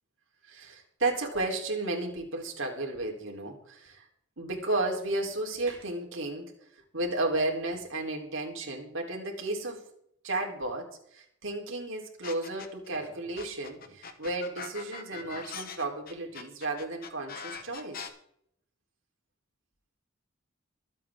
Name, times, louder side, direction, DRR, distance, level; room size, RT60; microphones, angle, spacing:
voice 1, 0.5-4.1 4.4-6.5 6.9-9.8 10.2-18.1, right 2 dB, 65° right, 1 dB, 3.6 m, -33 dB
sound 1, 12.2-12.9 13.4-18.1, left 6 dB, 45° left, 1.3 m, -41 dB
24.0 x 8.6 x 3.6 m, 0.71 s
head